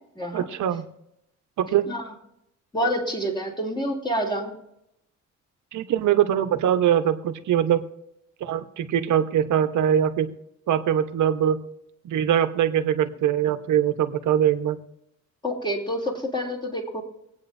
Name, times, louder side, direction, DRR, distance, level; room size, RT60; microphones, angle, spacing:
voice 1, 0.3-0.9 1.6-1.9 5.7-7.8 8.4-10.3 10.7-11.6 12.0-14.8, right 10 dB, 75° right, 8 dB, 1.1 m, -22 dB
voice 2, 2.7-4.6 15.4-17.0, equal, 15° left, 0 dB, 3.1 m, -27 dB
24.5 x 9.0 x 2.7 m, 0.81 s
cardioid pair, 90°, 30 cm